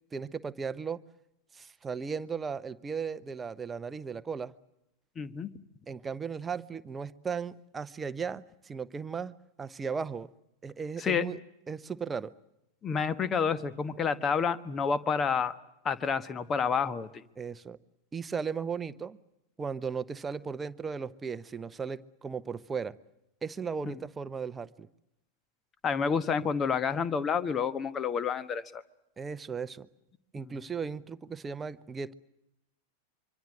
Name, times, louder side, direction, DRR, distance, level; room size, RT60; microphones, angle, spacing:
voice 1, 0.1-1.0 1.5-4.5 5.9-10.3 10.6-11.4 11.7-12.3 17.4-17.8 18.1-19.2 19.6-23.0 23.4-24.9 29.2-29.9 30.3-32.1, right 5 dB, 15° right, 13 dB, 0.9 m, -36 dB
voice 2, 5.2-5.5 11.0-11.3 12.8-15.5 15.8-17.1 25.8-28.8 30.4-30.5, left 6 dB, 25° left, 14 dB, 1.3 m, -29 dB
25.0 x 25.0 x 7.7 m, 0.87 s
figure-of-eight pair, 90°, 0 cm